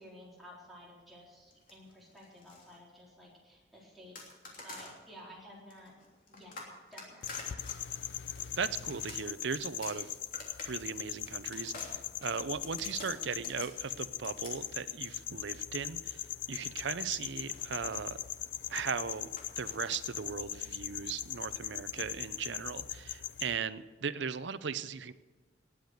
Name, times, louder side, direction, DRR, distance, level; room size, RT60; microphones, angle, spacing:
voice 1, 0.0-4.3 4.6-6.6 6.9-7.3, equal, ahead, -5 dB, 4.2 m, -53 dB
sound 1, 1.5-2.8 4.2-5.0 5.7-16.3 17.4-20.3, left 3 dB, 50° left, 3.2 m, -50 dB
sound 2, 7.2-23.6, left 12 dB, 75° left, 0.5 m, -40 dB
voice 2, 8.6-10.1 10.7-16.2 16.5-18.2 18.7-19.3 19.6-25.1, right 6 dB, 70° right, 13 dB, 0.6 m, -38 dB
19.0 x 8.0 x 6.7 m, 1.3 s
head